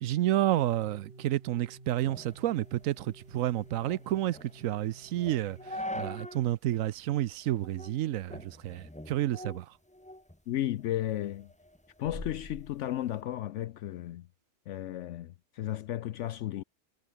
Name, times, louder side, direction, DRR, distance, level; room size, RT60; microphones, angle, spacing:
voice 1, 0.0-9.7, right 13 dB, 90° right, 1.0 m, -30 dB
sound 1, 0.6-5.8, right 2 dB, 45° right, 4.3 m, -53 dB
sound 2, 2.0-6.5 6.9-7.0 7.6-8.0 8.3-10.4 10.8-13.2, left 1 dB, 5° left, 1.3 m, -44 dB
voice 2, 10.5-11.5 12.0-14.3 14.7-16.6, left 13 dB, 70° left, 0.9 m, -34 dB
omnidirectional pair, 1.3 m